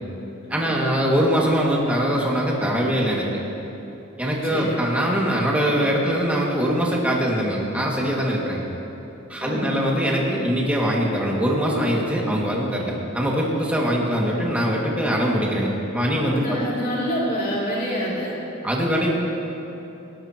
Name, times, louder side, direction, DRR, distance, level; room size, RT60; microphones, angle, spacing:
voice 1, 0.5-3.3 4.2-8.6 9.3-16.6 18.6-19.1, equal, 5° right, -4 dB, 2.2 m, -22 dB
voice 2, 4.5-5.0 9.4-9.9 16.3-18.3, equal, 45° left, -6 dB, 3.0 m, -27 dB
18.5 x 18.5 x 3.0 m, 3.0 s
head